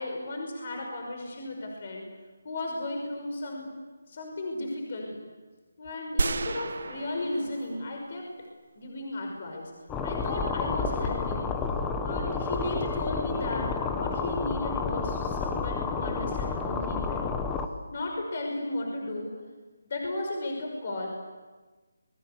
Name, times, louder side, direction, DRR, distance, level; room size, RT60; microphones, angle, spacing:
voice 1, 0.0-2.1 2.4-3.7 4.1-5.2 5.8-8.3 8.8-9.7 10.0-11.6 12.0-17.4 17.9-19.4 19.8-21.1, left 2 dB, 40° left, 2 dB, 5.8 m, -34 dB
sound 1, 6.2-8.5, right 4 dB, 55° right, 1.4 m, -32 dB
sound 2, 9.9-17.7, left 5 dB, 10° left, 1.2 m, -30 dB
28.5 x 22.0 x 8.3 m, 1.3 s
figure-of-eight pair, 170°, 0 cm